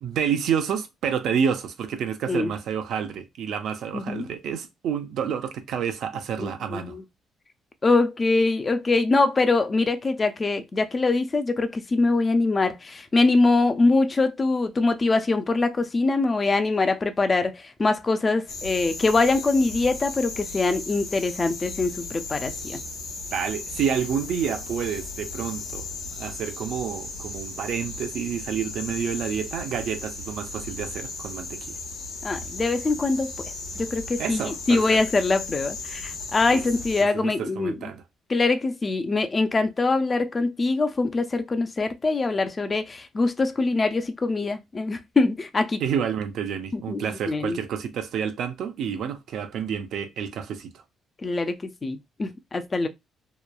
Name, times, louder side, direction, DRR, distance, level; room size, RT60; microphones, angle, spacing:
voice 1, 0.0-7.0 23.3-25.9 26.2-31.7 34.2-35.0 36.5-36.6 37.0-38.0 45.8-50.8, right 7 dB, 75° right, 0.4 m, -29 dB
voice 2, 3.9-4.3 6.4-7.0 7.8-22.8 32.2-33.3 33.8-37.9 38.3-45.8 46.7-47.6 51.2-52.9, left 3 dB, 30° left, 0.4 m, -23 dB
sound 1, 18.5-37.0, left 3 dB, 85° left, 0.9 m, -36 dB
2.9 x 2.1 x 2.2 m
cardioid pair, 105°, 0 cm